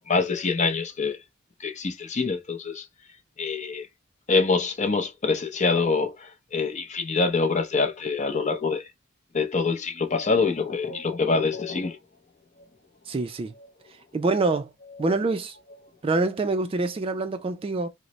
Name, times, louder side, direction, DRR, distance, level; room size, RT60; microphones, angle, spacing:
voice 1, 0.1-1.2 1.6-2.8 3.4-3.9 4.3-8.9 9.3-12.0, left 4 dB, 35° left, 0.6 m, -25 dB
voice 2, 13.1-13.5 14.1-14.7 15.0-15.6 16.0-17.9, right 3 dB, 30° right, 0.3 m, -25 dB
3.9 x 2.1 x 3.0 m
head